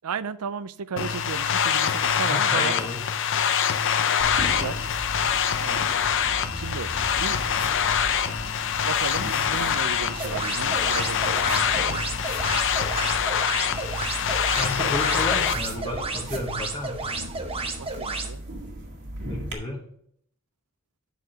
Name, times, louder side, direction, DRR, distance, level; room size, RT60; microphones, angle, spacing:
voice 1, 0.0-2.7 4.5-4.8 5.6-5.9 6.6-7.4 8.8-12.0 14.6-15.1 17.8-18.4, right 6 dB, 85° right, 0.5 m, -35 dB
sound 1, 1.0-15.6, left 8 dB, 60° left, 0.7 m, -25 dB
voice 2, 2.2-3.0 14.5-17.3 19.2-19.8, left 1 dB, 20° left, 1.1 m, -32 dB
sound 2, 4.2-19.5, right 1 dB, 60° right, 1.8 m, -37 dB
sound 3, 10.1-18.3, right 3 dB, 25° right, 0.9 m, -32 dB
8.2 x 6.0 x 5.0 m
head